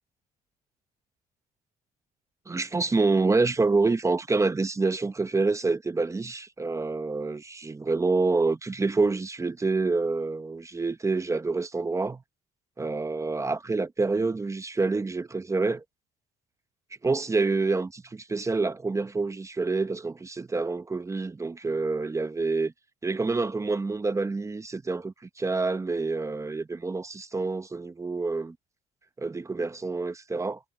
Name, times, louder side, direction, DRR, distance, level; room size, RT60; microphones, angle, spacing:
voice 1, 2.5-12.2 12.8-15.8 17.0-22.7 23.0-28.6 29.2-30.6, right 3 dB, 15° right, 0.8 m, -27 dB
cardioid pair, 110°, 17 cm